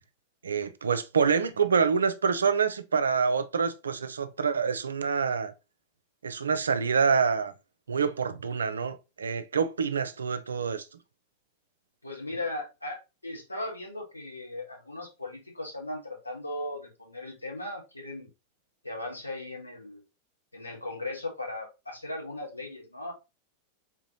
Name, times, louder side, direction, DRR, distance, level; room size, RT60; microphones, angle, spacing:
voice 1, 0.4-5.5 6.2-7.5 7.9-10.8, right 5 dB, 70° right, 0.4 m, -26 dB
voice 2, 12.0-18.3 18.8-20.0 20.5-23.1, left 2 dB, 85° left, 1.0 m, -37 dB
3.6 x 2.9 x 2.8 m
figure-of-eight pair, 90°, 0 cm